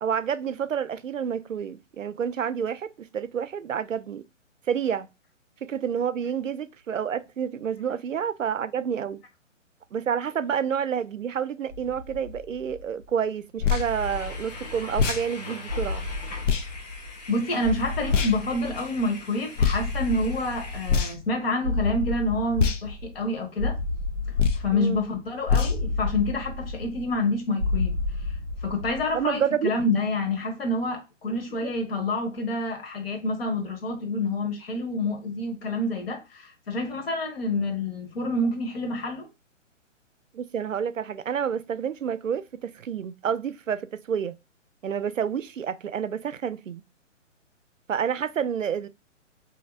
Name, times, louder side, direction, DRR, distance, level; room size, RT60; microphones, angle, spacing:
voice 1, 0.0-4.2 4.7-5.1 5.6-9.2 9.9-16.1 24.7-25.0 29.1-29.7 31.6-31.7 40.3-44.3 44.8-46.8 47.9-48.9, right 8 dB, 80° right, 0.5 m, -29 dB
sound 1, 11.7-13.0 13.7-15.2 15.7-17.3 17.6-19.2 19.6-21.3 21.6-23.2 23.6-25.2 25.6-27.2 27.6-29.2, left 3 dB, 20° right, 0.4 m, -32 dB
sound 2, 13.6-13.9 14.9-15.2 16.4-16.6 18.1-18.3 19.6-19.8 20.8-21.3 22.6-22.8 24.3-24.7 25.5-25.8, left 6 dB, 70° left, 0.6 m, -23 dB
sound 3, 13.8-21.1, left 2 dB, 35° left, 0.8 m, -42 dB
voice 2, 17.3-23.8 24.5-28.0 28.6-39.3, left 2 dB, 50° left, 1.2 m, -28 dB
4.1 x 2.8 x 2.5 m
figure-of-eight pair, 130°, 38 cm